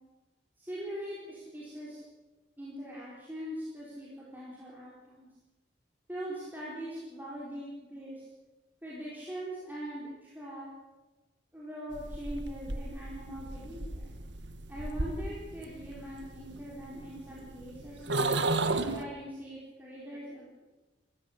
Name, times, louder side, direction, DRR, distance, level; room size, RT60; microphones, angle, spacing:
voice 1, 0.6-2.0 2.6-5.3 6.1-8.3 8.8-10.7 11.5-14.1 14.7-18.3 18.8-20.6, equal, 10° right, -7 dB, 4.4 m, -42 dB
sound 1, 11.9-19.0, right 2 dB, 75° right, 1.6 m, -34 dB
29.0 x 14.0 x 8.1 m, 1.2 s
head